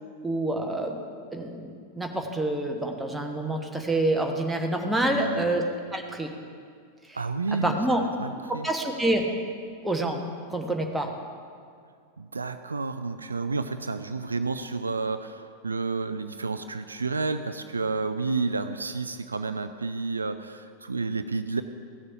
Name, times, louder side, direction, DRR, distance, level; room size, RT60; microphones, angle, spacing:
voice 1, 0.2-1.0 1.3-5.6 5.9-6.3 7.1-7.2 7.6-8.0 8.6-9.2 9.8-10.2 10.5-11.1, right 1 dB, 5° right, 2 dB, 1.2 m, -27 dB
voice 2, 5.0-5.5 7.1-8.7 12.2-21.6, right 4 dB, 75° right, 10 dB, 0.4 m, -30 dB
16.0 x 6.6 x 5.8 m, 2.2 s
figure-of-eight pair, 90°, 0 cm